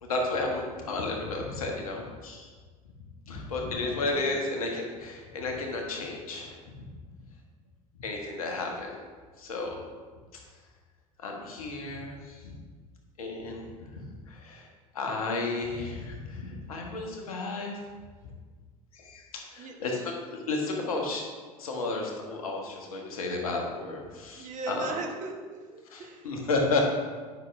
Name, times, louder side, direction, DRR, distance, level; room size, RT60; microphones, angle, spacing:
voice 1, 0.0-2.5 3.3-6.7 8.0-9.0 9.4-9.9 10.3-10.4 11.2-12.5 13.2-14.7 14.9-17.8 18.9-24.9 25.9-26.8, left 3 dB, 75° left, 1 dB, 1.2 m, -33 dB
voice 2, 3.3-4.4 19.6-20.1 24.3-26.3 26.7-26.8, right 3 dB, 45° right, 2 dB, 1.1 m, -40 dB
9.6 x 5.8 x 2.5 m, 1.5 s
figure-of-eight pair, 70°, 18 cm